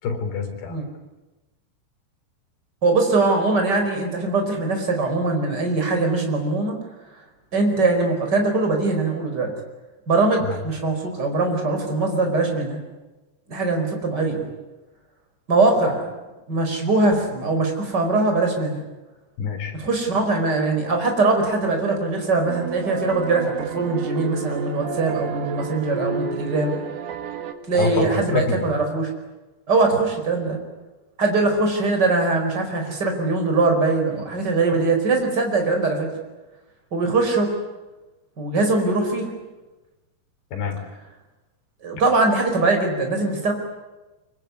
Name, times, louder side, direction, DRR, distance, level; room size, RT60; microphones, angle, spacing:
voice 1, 0.0-0.8 10.5-10.6 19.4-19.7 27.8-28.7 40.5-40.8, left 5 dB, 85° left, 4 dB, 6.0 m, -26 dB
voice 2, 2.8-6.8 7.5-9.5 10.1-12.8 13.5-14.4 15.5-16.1 16.5-18.8 19.7-26.8 27.7-29.1 29.7-30.6 31.2-36.1 36.9-37.5 38.4-39.3 41.8-43.5, right 3 dB, 25° right, 3 dB, 5.1 m, -21 dB
sound 1, 22.5-27.5, right 6 dB, 75° right, 3.7 m, -31 dB
24.5 x 24.0 x 9.7 m, 1.1 s
omnidirectional pair, 4.7 m